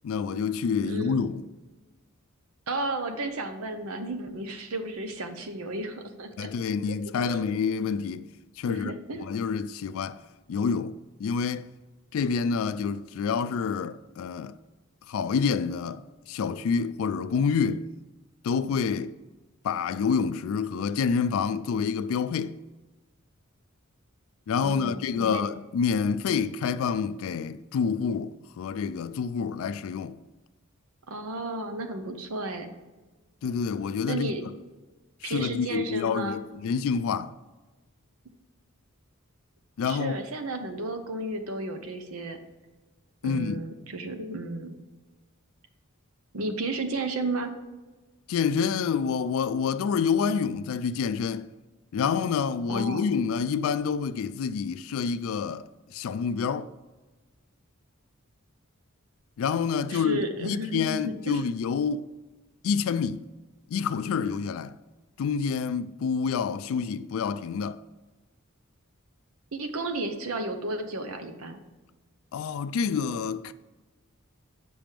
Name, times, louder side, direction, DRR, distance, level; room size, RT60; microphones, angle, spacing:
voice 1, 0.0-1.4 6.4-8.3 8.6-10.2 10.5-11.7 12.1-14.6 15.1-17.9 18.4-19.1 19.6-22.6 24.5-30.2 33.4-34.5 35.2-37.4 39.8-40.1 43.2-43.6 48.3-51.5 51.9-56.7 59.4-62.0 62.6-63.2 63.7-64.7 65.2-67.8 72.3-73.5, left 6 dB, 70° left, 0.3 m, -28 dB
voice 2, 0.8-1.2 2.7-6.5 7.2-7.5 8.7-9.3 24.6-25.4 31.1-32.7 34.0-34.4 35.2-36.4 39.8-42.4 43.2-44.8 46.3-47.5 52.7-53.0 59.9-61.4 69.5-71.6, right 2 dB, 75° right, 0.9 m, -33 dB
7.4 x 6.0 x 3.4 m
head